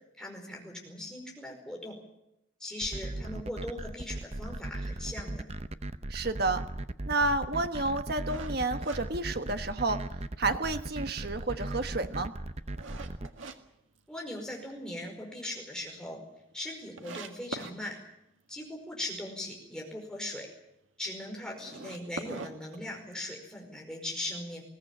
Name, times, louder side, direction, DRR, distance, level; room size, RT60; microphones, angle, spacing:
voice 1, 0.2-2.0 2.6-5.4 14.1-16.2 16.5-18.0 18.5-20.5 21.0-24.6, left 1 dB, 5° left, 0 dB, 5.0 m, -39 dB
sound 1, 2.8-13.3, right 2 dB, 30° right, 0.7 m, -37 dB
voice 2, 6.1-6.6 7.1-10.0 10.4-12.3, right 2 dB, 50° right, 9 dB, 1.3 m, -30 dB
sound 2, 8.3-10.0 10.4-10.5 11.0-13.6 14.0-14.7 15.1-15.2 15.5-15.6 15.8-15.9 16.5-16.6 17.0-17.8 21.5-23.4, right 3 dB, 75° right, 1.9 m, -43 dB
22.0 x 17.0 x 8.7 m, 0.84 s
head